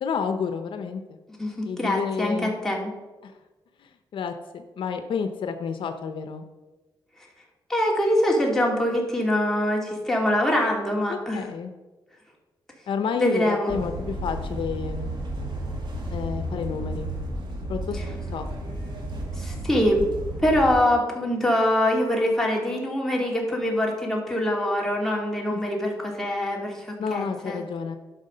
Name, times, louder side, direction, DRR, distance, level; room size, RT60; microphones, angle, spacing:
voice 1, 0.0-1.2 1.6-2.5 3.2-3.3 3.8-6.5 11.1-11.7 12.9-15.1 16.1-17.1 17.7-18.0 18.3-18.8 25.5-25.6 27.0-28.0, left 6 dB, 75° left, 7 dB, 0.7 m, -30 dB
voice 2, 1.4-2.9 7.7-11.5 13.2-13.7 19.4-20.0 20.4-27.6, left 1 dB, 5° left, -2 dB, 2.4 m, -24 dB
sound 1, 13.7-20.7, right 1 dB, 65° right, 2.1 m, -32 dB
11.5 x 5.7 x 5.5 m, 1.2 s
cardioid pair, 95°, 9 cm